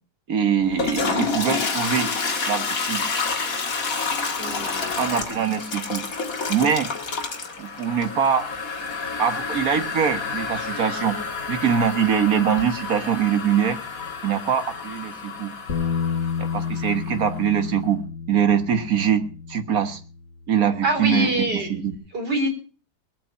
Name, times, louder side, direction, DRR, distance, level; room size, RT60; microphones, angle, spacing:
voice 1, 0.3-2.1 2.5-3.0 5.0-6.0 6.5-6.9 7.6-8.5 9.2-11.2 11.5-13.8 14.2-15.5 16.4-18.0 18.3-19.2 19.5-20.0 20.5-21.9, right 8 dB, 60° right, 9 dB, 1.8 m, -23 dB
Toilet flush, 0.6-17.4, left 4 dB, 55° left, 2.2 m, -29 dB
voice 2, 4.4-5.0 20.8-21.7 22.1-22.5, right 1 dB, 80° right, 2 dB, 4.4 m, -24 dB
Bass guitar, 15.7-21.9, left 6 dB, 40° left, 2.6 m, -31 dB
20.5 x 8.5 x 5.7 m, 0.38 s
omnidirectional pair, 1.8 m